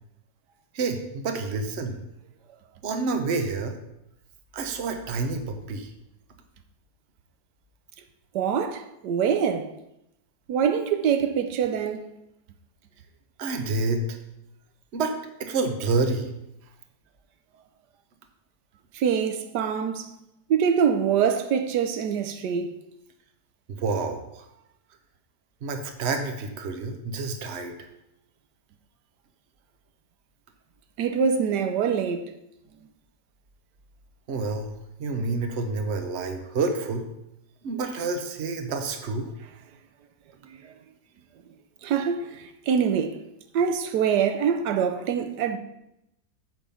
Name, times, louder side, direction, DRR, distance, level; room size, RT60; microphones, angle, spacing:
voice 1, 0.7-2.0 2.8-3.7 4.5-5.9 13.4-14.1 14.9-15.1 15.4-16.3 23.8-24.5 25.6-27.7 34.3-34.7 35.0-37.0 37.6-39.3, right 3 dB, 45° right, 1.1 m, -28 dB
voice 2, 8.3-9.7 10.5-12.1 18.9-20.1 20.5-22.7 31.0-32.3 41.8-42.3 42.7-43.2 43.5-45.6, right 7 dB, 85° right, 1.3 m, -24 dB
9.2 x 3.7 x 7.0 m
omnidirectional pair, 1.8 m